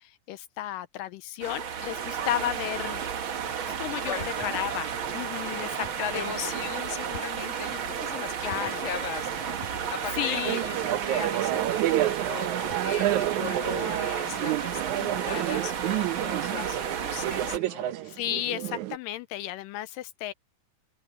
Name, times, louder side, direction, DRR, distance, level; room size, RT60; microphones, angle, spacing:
voice 1, 0.0-3.1 3.8-4.1 4.4-6.3 8.4-8.8 10.1-10.6 15.0-15.4 18.0-20.3, left 13 dB, 80° left, 2.2 m, -33 dB
sound 1, 1.4-17.6, right 7 dB, 55° right, 1.5 m, -33 dB
voice 2, 4.0-4.7 5.5-5.7 6.0-18.1, left 7 dB, 30° left, 1.4 m, -38 dB
sound 2, 4.2-4.8 5.8-6.2 7.1-7.7 8.5-9.1 9.6-10.3 12.5-13.1, left 3 dB, 60° left, 9.1 m, -47 dB
sound 3, 10.4-19.0, right 14 dB, 75° right, 1.9 m, -29 dB
open air
omnidirectional pair, 4.1 m